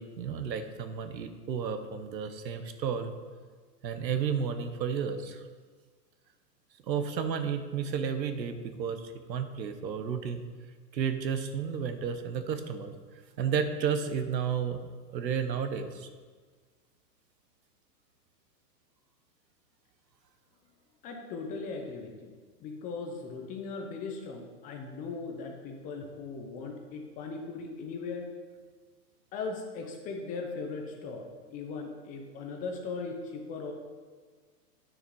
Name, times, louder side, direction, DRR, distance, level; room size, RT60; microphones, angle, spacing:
voice 1, 0.0-3.1 3.8-5.4 6.9-10.5 10.9-12.9 13.4-14.8 15.1-16.1, right 7 dB, 90° right, 9 dB, 1.1 m, -32 dB
voice 2, 21.0-22.3 22.6-28.3 29.3-33.7, left 4 dB, 15° left, 3 dB, 0.6 m, -38 dB
9.2 x 6.6 x 4.6 m, 1.5 s
hypercardioid pair, 140°, 49 cm